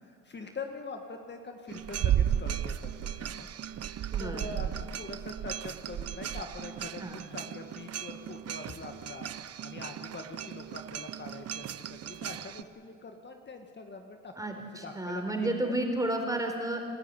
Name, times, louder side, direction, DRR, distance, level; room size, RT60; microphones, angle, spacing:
voice 1, 0.0-3.5 4.2-9.3 9.6-15.5 16.0-16.1, left 3 dB, 35° left, 4 dB, 1.9 m, -44 dB
sound 1, 1.7-12.6, right 10 dB, 55° right, 0.8 m, -35 dB
voice 2, 4.1-4.6 7.0-7.2 14.4-16.8, right 1 dB, 10° right, 3 dB, 4.3 m, -32 dB
27.5 x 13.0 x 9.8 m, 2.3 s
cardioid pair, 90°, 30 cm